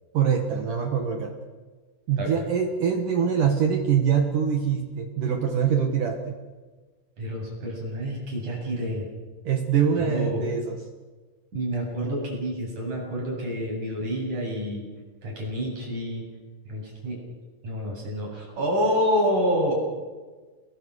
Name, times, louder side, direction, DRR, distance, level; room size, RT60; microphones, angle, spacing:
voice 1, 0.1-1.3 2.1-6.4 9.4-10.8, right 7 dB, 60° right, 4 dB, 2.3 m, -24 dB
voice 2, 7.2-9.1 10.0-10.4 11.5-14.9 15.2-16.3 16.7-17.2 17.6-19.7, equal, 35° right, -2 dB, 9.2 m, -28 dB
29.5 x 21.5 x 6.5 m, 1.3 s
omnidirectional pair, 5.9 m